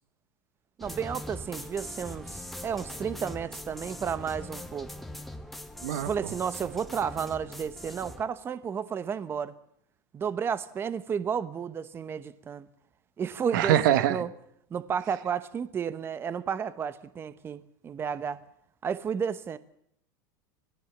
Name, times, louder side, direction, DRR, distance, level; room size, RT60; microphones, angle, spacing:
sound 1, 0.8-8.2, left 1 dB, ahead, 1.5 m, -41 dB
voice 1, 0.8-4.9 6.0-9.5 10.1-12.7 13.2-14.3 14.7-18.4 18.8-19.6, right 7 dB, 20° right, 14 dB, 0.9 m, -32 dB
voice 2, 13.5-14.2, right 11 dB, 75° right, 13 dB, 1.4 m, -23 dB
26.0 x 17.5 x 7.1 m, 0.73 s
supercardioid pair, 135°, 10 cm